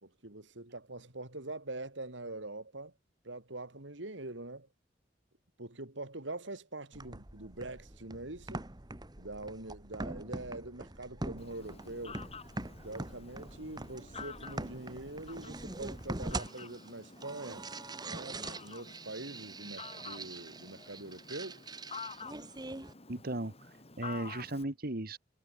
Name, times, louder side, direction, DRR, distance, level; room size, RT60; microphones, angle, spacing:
voice 1, 0.0-2.9 3.2-4.7 5.6-8.6 9.2-12.2 12.8-17.7 18.0-22.0, right 2 dB, 75° right, 3.2 m, -44 dB
sound 1, 6.9-22.9, right 2 dB, 20° right, 1.5 m, -43 dB
Fowl, 11.4-24.6, left 4 dB, 35° left, 4.4 m, -50 dB
voice 2, 23.1-25.2, right 1 dB, 55° right, 2.0 m, -37 dB
head